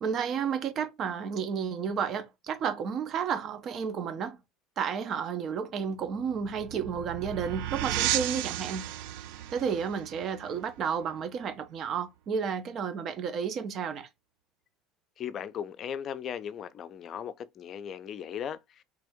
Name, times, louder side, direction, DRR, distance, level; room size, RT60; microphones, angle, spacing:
voice 1, 0.0-4.4 4.8-8.9 9.5-14.1, right 7 dB, 50° right, 0.7 m, -32 dB
sound 1, 6.0-11.4, right 13 dB, 70° right, 0.3 m, -34 dB
voice 2, 15.2-18.8, left 8 dB, 50° left, 0.5 m, -37 dB
3.3 x 2.6 x 3.5 m
hypercardioid pair, 80°, 0 cm